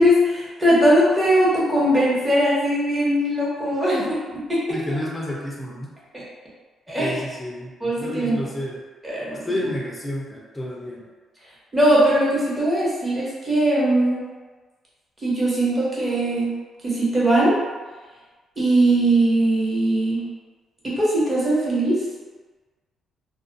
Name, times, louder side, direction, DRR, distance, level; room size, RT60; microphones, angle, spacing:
voice 1, 0.0-4.0 6.1-6.2 6.9-7.2 7.8-8.4 9.0-9.4 11.7-14.2 15.2-16.5 16.8-17.5 18.6-20.2 20.8-22.0, right 1 dB, 20° right, -8 dB, 1.0 m, -20 dB
voice 2, 4.7-5.9 6.9-8.8 9.5-11.0, left 1 dB, 15° left, -3 dB, 0.5 m, -30 dB
2.4 x 2.2 x 2.6 m, 1.3 s
cardioid pair, 90°, 0 cm